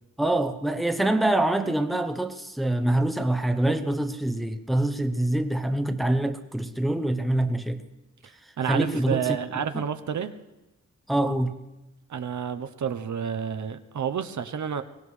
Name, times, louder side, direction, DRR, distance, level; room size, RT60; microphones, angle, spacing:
voice 1, 0.2-7.8 8.7-9.4 9.7-9.8 11.1-11.5, right 1 dB, ahead, 0.7 m, -25 dB
voice 2, 8.6-10.3 12.1-14.8, right 7 dB, 70° right, 0.8 m, -29 dB
23.0 x 17.5 x 3.2 m
wide cardioid pair, 135°, 31 cm